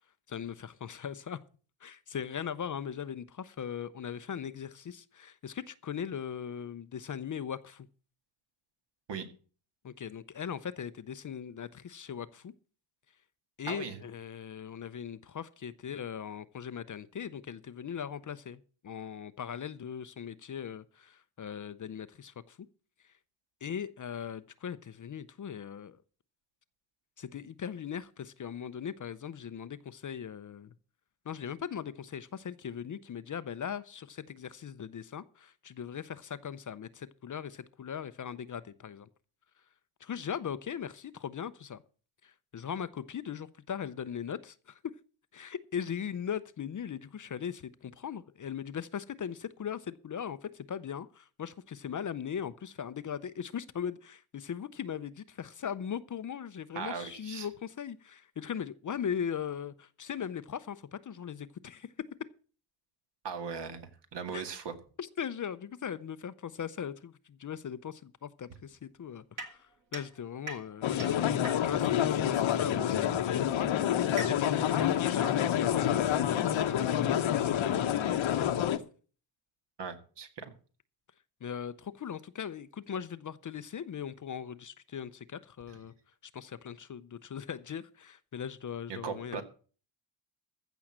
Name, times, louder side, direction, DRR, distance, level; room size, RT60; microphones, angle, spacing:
voice 1, 0.3-1.4 1.8-7.9 9.8-12.5 13.6-22.7 23.0-23.1 23.6-26.0 27.2-30.7 31.3-39.1 40.0-41.8 42.2-44.8 45.3-61.9 64.3-64.4 65.0-73.5 74.1-78.3 81.4-85.9 86.2-89.4, left 8 dB, 40° left, 0.6 m, -39 dB
voice 2, 56.7-57.5 63.2-64.7 79.8-80.5 88.9-89.4, right 6 dB, 60° right, 2.1 m, -38 dB
sound 1, 69.4-72.0 73.0-76.4, right 2 dB, 40° right, 2.1 m, -45 dB
sound 2, 70.8-78.8, left 10 dB, 75° left, 1.1 m, -28 dB
15.0 x 6.3 x 7.3 m
wide cardioid pair, 150°, 47 cm